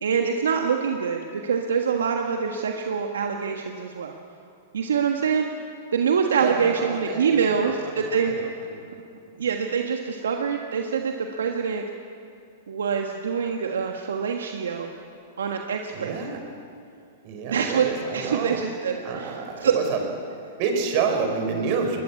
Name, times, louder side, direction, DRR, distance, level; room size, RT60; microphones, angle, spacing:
voice 1, 0.0-4.1 4.7-5.5 5.9-8.4 9.4-11.8 12.7-14.9 15.4-16.4 17.5-17.8 18.1-19.7, right 6 dB, 80° right, 3 dB, 1.5 m, -25 dB
voice 2, 6.4-8.8 15.9-16.4 17.2-18.6 19.0-20.0 20.6-22.0, right 5 dB, 50° right, 4 dB, 5.1 m, -29 dB
21.5 x 20.5 x 8.5 m, 2.4 s
hypercardioid pair, 110°, 0 cm